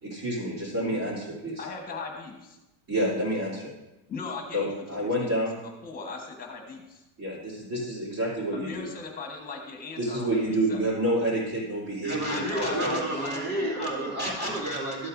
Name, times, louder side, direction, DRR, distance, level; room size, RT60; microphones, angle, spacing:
voice 1, 0.0-1.6 2.9-3.7 4.5-5.6 7.2-8.9 10.0-13.1, right 1 dB, 40° right, -8 dB, 3.1 m, -29 dB
voice 2, 1.6-2.6 4.1-5.4 5.8-7.0 8.5-10.4 10.7-10.8 12.2-14.1, left 4 dB, 15° left, 2 dB, 1.3 m, -38 dB
voice 3, 12.0-15.1, right 1 dB, 20° right, -5 dB, 2.6 m, -30 dB
13.0 x 7.7 x 2.6 m, 1.0 s
cardioid pair, 165°, 50 cm